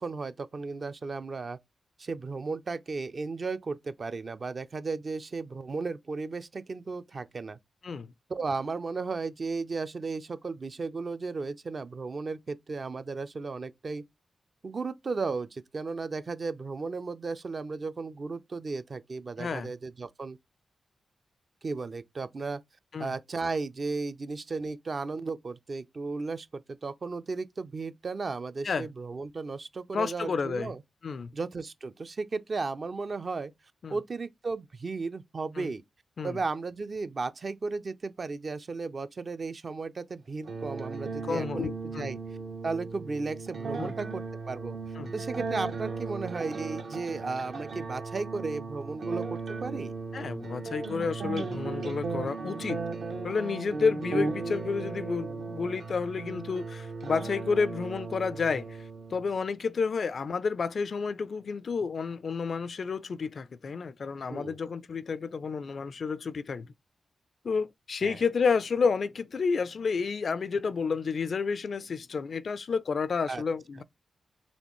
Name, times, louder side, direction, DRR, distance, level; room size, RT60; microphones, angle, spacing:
voice 1, 0.0-1.6 2.0-7.6 8.3-14.0 14.6-20.4 21.6-22.6 23.0-30.8 31.3-33.5 33.9-35.8 36.2-42.2 42.6-44.8 45.1-49.9 64.3-64.6 68.0-68.2 73.3-73.4, right 4 dB, 45° right, 0.4 m, -35 dB
voice 2, 19.4-19.7 22.9-23.1 28.6-28.9 29.9-30.7 31.0-31.3 33.8-34.0 35.6-35.7 36.2-36.4 41.3-42.1 43.8-43.9 45.0-45.1 50.1-52.8 53.2-58.8 59.1-66.7 67.4-73.8, left 5 dB, 60° left, 0.3 m, -30 dB
sound 1, 40.4-59.4, right 4 dB, 70° right, 0.8 m, -36 dB
4.2 x 3.1 x 3.0 m
cardioid pair, 90°, 0 cm